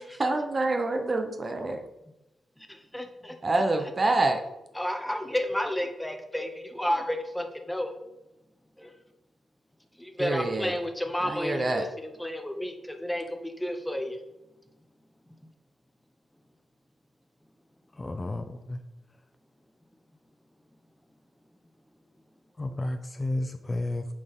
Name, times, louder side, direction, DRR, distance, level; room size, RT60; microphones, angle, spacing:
voice 1, 0.0-1.8 3.4-4.4 10.2-10.7 11.2-11.9, right 2 dB, 35° right, 6 dB, 0.8 m, -27 dB
voice 2, 2.7-3.4 4.7-7.9 8.8-8.9 10.0-14.2, left 1 dB, 5° left, 5 dB, 1.0 m, -32 dB
voice 3, 18.0-18.8 22.6-24.1, left 2 dB, 25° left, 7 dB, 0.5 m, -32 dB
8.5 x 4.2 x 3.6 m, 0.94 s
cardioid pair, 75°, 0 cm